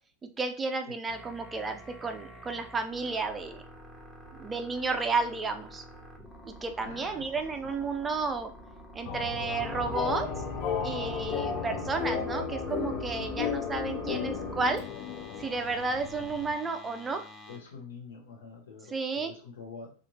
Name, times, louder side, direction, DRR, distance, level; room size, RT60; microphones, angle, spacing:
voice 1, 0.4-3.6 4.3-5.8 6.4-8.5 8.9-10.3 10.8-14.8 15.4-17.3 18.9-19.3, right 3 dB, 20° right, 6 dB, 0.4 m, -32 dB
sound 1, 1.1-17.6, right 2 dB, 5° left, 0.8 m, -45 dB
voice 2, 6.8-7.2 17.5-19.9, left 4 dB, 85° left, -1 dB, 0.8 m, -45 dB
sound 2, 9.0-16.5, left 8 dB, 45° left, 0.4 m, -34 dB
2.6 x 2.4 x 3.0 m, 0.39 s
hypercardioid pair, 110°, 0 cm